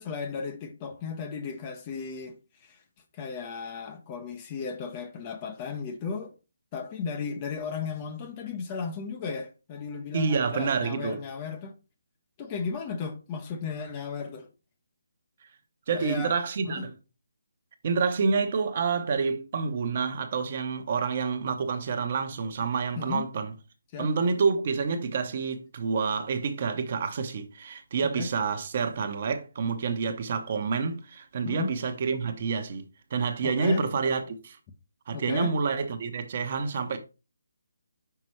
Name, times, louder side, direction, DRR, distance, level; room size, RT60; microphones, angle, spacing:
voice 1, 0.0-2.4 2.6-2.8 3.1-6.4 6.7-11.7 12.4-14.5 15.9-16.3 16.6-16.9 23.0-23.3 23.9-24.1 28.0-28.3 31.4-31.7 33.4-33.8 35.1-35.5, left 5 dB, 20° left, 0.6 m, -35 dB
voice 2, 10.1-11.2 15.9-16.9 17.8-23.5 24.0-32.8 33.1-34.6 35.1-37.0, right 5 dB, 40° right, 0.9 m, -28 dB
5.7 x 5.2 x 3.1 m
hypercardioid pair, 165°, 0 cm